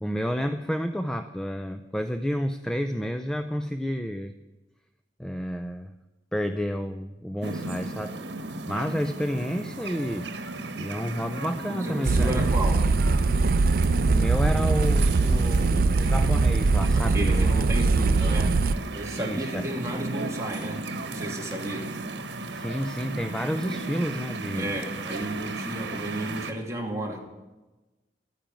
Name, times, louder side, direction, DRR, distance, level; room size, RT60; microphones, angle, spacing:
voice 1, 0.0-4.3 5.2-5.9 6.3-8.2 8.7-10.3 10.8-12.4 14.1-17.5 19.2-19.7 22.5-24.7, equal, 5° left, 8 dB, 0.5 m, -30 dB
sound 1, 7.4-26.5, right 2 dB, 85° right, 1.3 m, -35 dB
voice 2, 11.8-12.9 16.9-18.5 18.9-22.0 24.5-27.2, right 1 dB, 15° right, -1 dB, 2.7 m, -33 dB
sound 2, 12.1-18.7, right 3 dB, 55° right, 0.4 m, -22 dB
13.0 x 10.0 x 9.0 m, 1.1 s
head